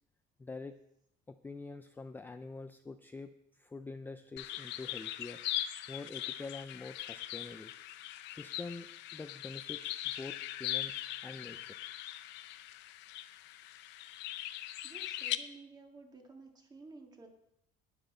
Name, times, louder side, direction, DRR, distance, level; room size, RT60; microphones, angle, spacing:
voice 1, 0.4-0.7 1.3-5.4 5.9-7.7 8.3-11.8, left 3 dB, 10° left, 8 dB, 0.4 m, -46 dB
sound 1, 4.4-15.4, left 14 dB, 85° left, 0.6 m, -40 dB
voice 2, 14.8-17.3, right 3 dB, 20° right, 2 dB, 1.9 m, -53 dB
12.0 x 9.9 x 4.3 m, 0.78 s
cardioid pair, 145°, 18 cm